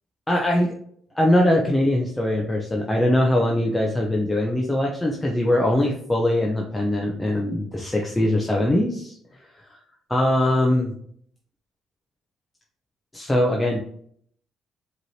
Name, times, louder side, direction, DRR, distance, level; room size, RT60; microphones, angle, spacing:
voice 1, 0.3-0.7 1.2-9.2 9.7-9.8 10.1-10.9 13.1-13.8, left 1 dB, 15° left, -1 dB, 0.7 m, -21 dB
4.7 x 3.2 x 2.8 m, 0.63 s
supercardioid pair, 70°, 0 cm